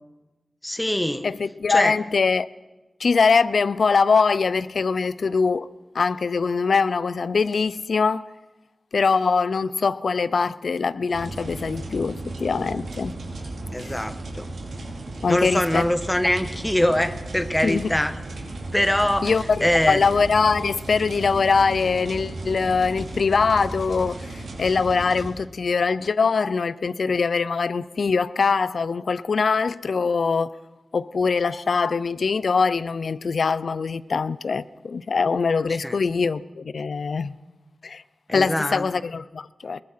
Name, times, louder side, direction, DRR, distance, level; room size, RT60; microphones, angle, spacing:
voice 1, 0.6-1.3 1.7-2.0 13.7-14.5 15.3-18.2 18.7-19.3 19.6-20.0 35.8-36.0 38.3-38.8, left 1 dB, 10° left, 1.4 m, -23 dB
voice 2, 1.2-2.5 3.0-5.7 5.9-8.2 8.9-13.1 13.9-14.0 15.2-15.8 17.6-17.9 19.2-30.5 30.9-37.4 37.8-38.0 38.3-39.8, left 5 dB, 70° left, 0.7 m, -22 dB
sound 1, 11.1-25.3, right 2 dB, 80° right, 5.2 m, -35 dB
24.0 x 22.0 x 5.8 m
wide cardioid pair, 95°, 0 cm